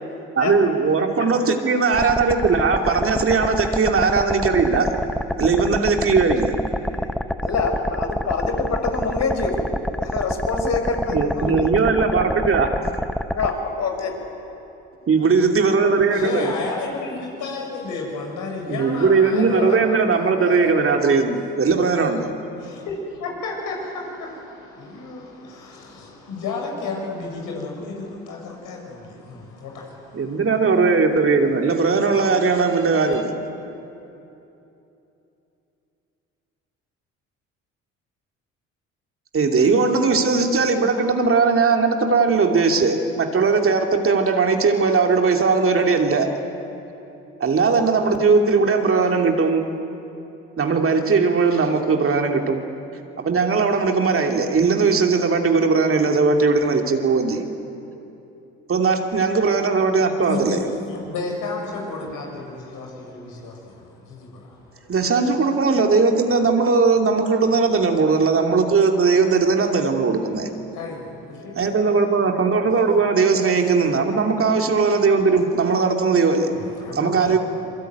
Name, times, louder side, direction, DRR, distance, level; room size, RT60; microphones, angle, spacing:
voice 1, 0.4-4.9 5.4-6.5 11.1-12.7 15.1-16.5 18.7-22.3 30.1-33.3 39.3-46.3 47.4-49.6 50.6-52.6 53.2-57.4 58.7-60.6 64.9-70.5 71.6-76.5 76.9-77.4, right 4 dB, 40° right, 3 dB, 2.8 m, -19 dB
sound 1, 1.9-13.5, equal, ahead, 1.0 m, -27 dB
voice 2, 7.4-9.6 10.0-11.7 13.3-14.1, left 4 dB, 55° left, 3 dB, 5.8 m, -25 dB
voice 3, 16.1-20.7 22.6-30.5 59.1-59.2 60.2-64.9 70.7-71.8 73.8-73.9 75.5-75.6 76.5-77.4, left 3 dB, 70° left, 0 dB, 7.2 m, -32 dB
25.5 x 23.0 x 9.4 m, 2.9 s
hypercardioid pair, 60°, 32 cm